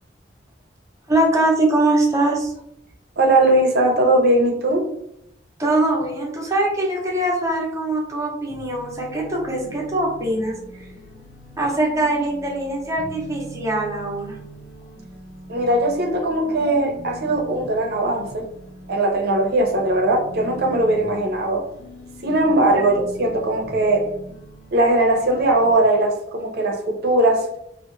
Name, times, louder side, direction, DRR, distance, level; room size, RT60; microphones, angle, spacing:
voice 1, 1.1-2.5 5.6-10.5 11.6-14.4, right 2 dB, 15° right, -2 dB, 0.7 m, -22 dB
voice 2, 3.2-4.9 15.5-18.5 18.9-21.6 22.2-24.1 24.7-27.5, right 1 dB, 60° right, 2 dB, 0.6 m, -19 dB
sound 1, 8.5-25.7, right 1 dB, 85° left, 0.6 m, -41 dB
2.8 x 2.1 x 2.5 m, 0.75 s
head